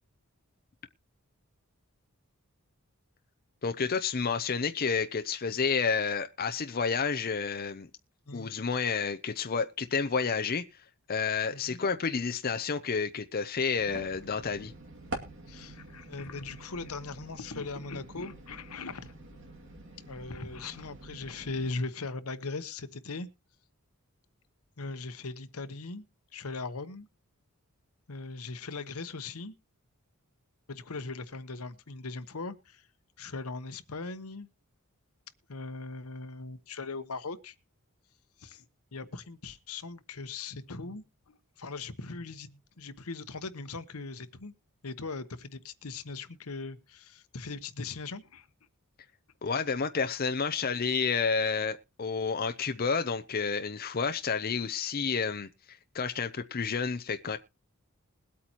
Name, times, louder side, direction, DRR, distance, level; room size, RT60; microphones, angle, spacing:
voice 1, 3.6-7.9 8.3-10.6 11.1-14.7 49.4-57.4, left 5 dB, 40° left, 0.6 m, -30 dB
sound 1, 13.8-21.7, right 2 dB, 55° right, 2.4 m, -46 dB
voice 2, 15.5-19.1 20.0-23.3 24.8-26.0 26.3-27.1 28.1-29.5 30.7-32.9 33.2-34.5 35.5-37.5 38.4-44.5 44.8-48.5, left 3 dB, 80° left, 1.0 m, -39 dB
21.0 x 8.5 x 2.9 m
head